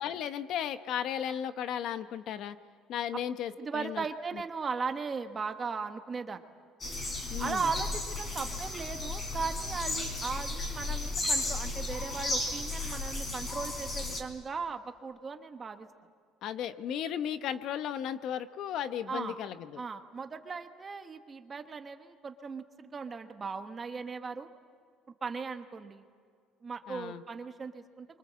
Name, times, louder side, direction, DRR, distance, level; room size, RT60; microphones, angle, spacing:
voice 1, 0.0-2.6 2.9-4.0 4.3-4.4 7.3-7.7 16.4-19.8 26.9-27.2, left 9 dB, 55° left, 11 dB, 0.9 m, -35 dB
voice 2, 3.6-6.4 7.4-15.9 19.1-19.4 19.8-24.5 25.2-26.0 26.6-28.2, right 5 dB, 25° right, 7 dB, 1.2 m, -37 dB
sound 1, 6.8-14.2, left 2 dB, 25° left, 3.7 m, -34 dB
28.0 x 24.5 x 7.5 m, 2.1 s
cardioid pair, 150°, 0 cm